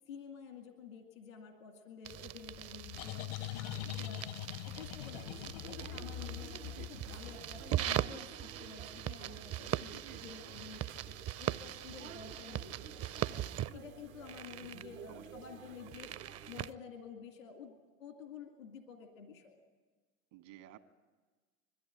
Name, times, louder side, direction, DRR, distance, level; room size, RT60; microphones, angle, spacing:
voice 1, 0.1-4.3 4.6-19.6, left 6 dB, 90° left, 3 dB, 2.2 m, -51 dB
sound 1, 2.0-16.7, right 12 dB, 40° right, 0.6 m, -41 dB
sound 2, 2.5-8.0, left 14 dB, 60° left, 0.7 m, -43 dB
sound 3, 5.1-16.7, right 7 dB, 85° right, 1.3 m, -53 dB
voice 2, 6.6-7.0 9.9-10.3 15.1-15.3 20.3-20.8, right 14 dB, 70° right, 8 dB, 1.7 m, -54 dB
21.5 x 14.5 x 10.0 m, 1.4 s
hypercardioid pair, 75°, 39 cm